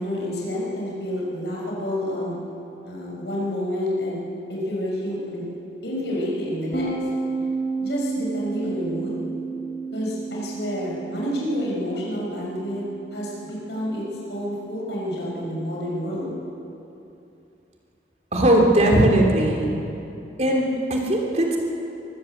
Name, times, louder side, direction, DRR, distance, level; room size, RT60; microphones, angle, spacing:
voice 1, 0.0-2.4 2.8-4.2 4.5-5.4 5.8-6.9 7.8-9.2 9.9-12.8 13.1-14.0 14.3-16.3, equal, 75° left, -4 dB, 6.2 m, -29 dB
sound 1, 6.7-16.2, right 4 dB, 50° left, 4.9 m, -33 dB
voice 2, 18.3-19.7 20.4-21.6, right 1 dB, 40° right, 0 dB, 3.3 m, -19 dB
24.0 x 15.0 x 8.1 m, 2.8 s
head